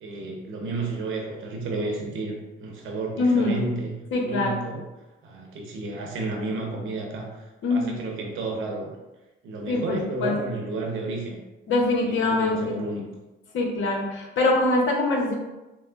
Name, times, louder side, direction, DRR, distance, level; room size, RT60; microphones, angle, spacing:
voice 1, 0.0-4.8 5.2-8.9 9.4-11.4 12.0-13.1, right 2 dB, 80° right, 1 dB, 0.9 m, -32 dB
voice 2, 3.2-3.6 4.1-4.6 7.6-8.0 9.7-10.3 11.7-12.8 13.5-15.3, left 2 dB, 75° left, 0 dB, 0.9 m, -23 dB
5.8 x 2.1 x 2.5 m, 1.1 s
cardioid pair, 90°, 20 cm